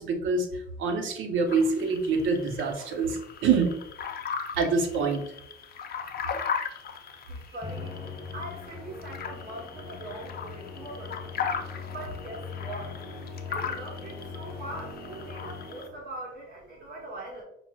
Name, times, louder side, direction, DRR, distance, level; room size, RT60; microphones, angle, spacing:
voice 1, 0.0-3.7 4.6-5.2 6.3-6.4, right 4 dB, 80° right, 5 dB, 0.7 m, -26 dB
sound 1, 1.5-15.9, left 6 dB, 50° left, 0.5 m, -38 dB
voice 2, 6.9-8.0 8.3-11.5 11.9-13.0 13.5-17.4, right 1 dB, 50° right, -2 dB, 1.0 m, -42 dB
Musical instrument, 7.6-16.1, left 4 dB, ahead, 1.4 m, -41 dB
5.8 x 2.1 x 2.2 m, 0.76 s
cardioid pair, 90°, 20 cm